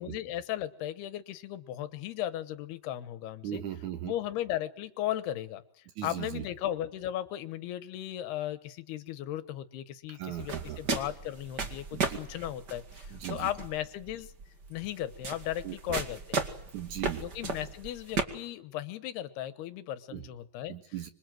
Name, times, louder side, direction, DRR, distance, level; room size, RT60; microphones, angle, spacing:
voice 1, 0.0-3.6 4.0-5.6 6.0-14.3 14.7-16.4 17.2-20.8, left 12 dB, 85° left, 12 dB, 3.2 m, -36 dB
voice 2, 3.4-4.1 6.0-6.4 10.1-10.8 11.9-12.2 13.1-13.5 15.6-15.8 16.7-17.3 20.1-20.2 20.7-21.1, right 11 dB, 60° right, 8 dB, 2.3 m, -38 dB
sound 1, 10.4-18.2, right 4 dB, 35° right, 2.0 m, -36 dB
26.0 x 24.5 x 7.8 m, 0.66 s
omnidirectional pair, 4.5 m